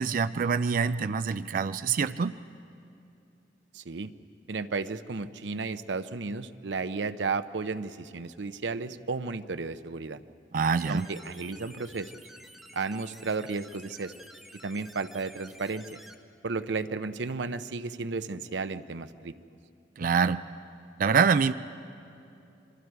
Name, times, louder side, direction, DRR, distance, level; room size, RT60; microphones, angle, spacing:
voice 1, 0.0-2.4 10.5-11.1 20.0-20.4 21.0-21.5, right 5 dB, 50° right, 12 dB, 0.4 m, -25 dB
voice 2, 3.7-4.1 4.5-10.2 10.9-12.1 12.7-14.1 14.6-16.0 16.4-19.3, right 4 dB, 85° right, 11 dB, 0.7 m, -33 dB
sound 1, 10.8-16.2, equal, ahead, 0.8 m, -51 dB
27.0 x 23.0 x 4.7 m, 2.7 s
head